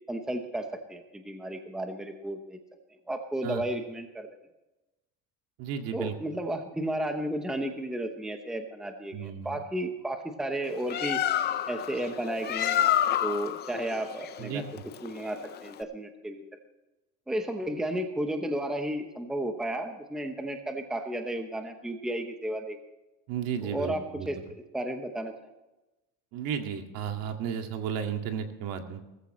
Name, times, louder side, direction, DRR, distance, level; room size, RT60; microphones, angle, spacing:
voice 1, 0.1-2.6 3.1-4.3 5.9-11.2 11.7-12.9 13.2-14.6 15.0-16.4 17.3-22.8 23.6-24.4 24.7-25.3, right 1 dB, ahead, 5 dB, 0.9 m, -33 dB
voice 2, 5.6-6.1 9.1-9.6 14.4-14.6 23.3-24.3 26.3-29.0, right 7 dB, 65° right, 5 dB, 2.1 m, -33 dB
Bird, 10.6-15.8, left 11 dB, 25° left, 0.5 m, -29 dB
18.5 x 14.5 x 3.2 m, 1.0 s
cardioid pair, 175°, 38 cm